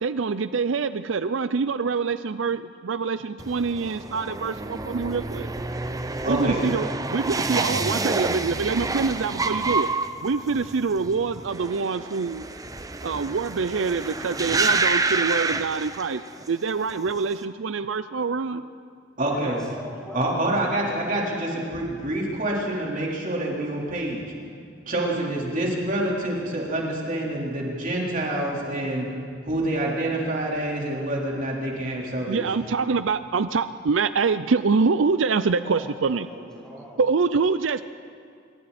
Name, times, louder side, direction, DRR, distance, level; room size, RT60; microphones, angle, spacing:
voice 1, 0.0-5.5 6.3-9.9 10.2-12.4 13.0-16.2 16.5-18.6 32.3-36.3 37.0-37.8, right 4 dB, 75° right, 13 dB, 0.5 m, -25 dB
sound 1, 3.4-16.5 16.8-17.3, right 3 dB, 20° right, 0.7 m, -28 dB
voice 2, 6.2-6.6 19.2-19.6 20.1-24.2 24.9-29.1 29.4-32.4, right 1 dB, 45° right, -3 dB, 4.1 m, -27 dB
voice 3, 19.3-21.1 35.6-37.0, equal, 5° left, -4 dB, 6.1 m, -41 dB
26.5 x 23.5 x 4.3 m, 2.3 s
head